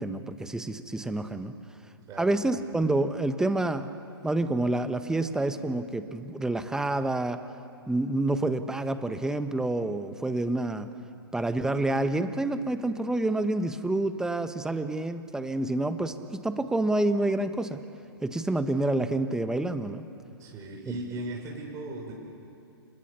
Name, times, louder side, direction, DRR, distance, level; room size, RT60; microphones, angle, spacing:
voice 1, 0.0-1.6 2.2-3.9 4.2-7.4 7.9-10.9 11.3-17.8 18.2-20.1, right 2 dB, 5° right, 10 dB, 1.2 m, -28 dB
voice 2, 2.1-2.4 20.4-22.1, right 2 dB, 25° right, -1 dB, 6.7 m, -37 dB
30.0 x 27.5 x 7.0 m, 2.5 s
figure-of-eight pair, 120°, 13 cm